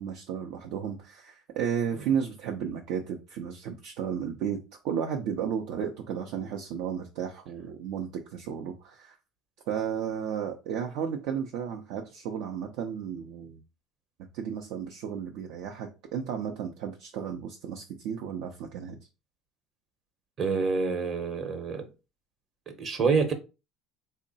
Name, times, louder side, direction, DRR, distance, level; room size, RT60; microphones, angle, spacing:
voice 1, 0.0-9.2 9.7-13.6 14.3-19.0, right 8 dB, 70° right, 0.6 m, -33 dB
voice 2, 20.4-21.8 22.7-23.3, right 4 dB, 35° right, 0.9 m, -27 dB
3.7 x 2.1 x 4.0 m
cardioid pair, 130°, 0 cm